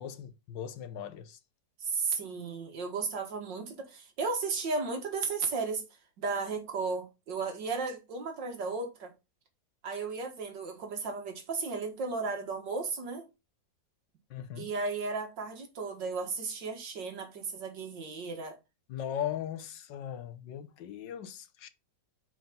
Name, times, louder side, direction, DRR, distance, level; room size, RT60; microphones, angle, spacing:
voice 1, 0.0-1.4 14.3-14.7 18.9-21.7, left 10 dB, 75° left, 1.5 m, -38 dB
voice 2, 1.8-5.8 6.2-9.1 9.8-13.3 14.6-18.6, right 4 dB, 75° right, 2.2 m, -34 dB
6.3 x 5.0 x 5.2 m
omnidirectional pair, 2.0 m